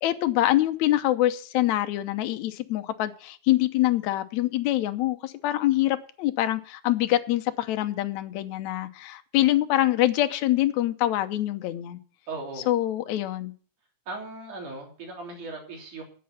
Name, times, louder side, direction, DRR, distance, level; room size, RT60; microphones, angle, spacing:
voice 1, 0.0-12.0 12.7-13.5, left 14 dB, 75° left, 8 dB, 2.2 m, -25 dB
voice 2, 12.3-12.7 14.1-16.0, right 3 dB, 85° right, 1 dB, 4.9 m, -37 dB
10.0 x 8.7 x 7.8 m, 0.42 s
omnidirectional pair, 3.5 m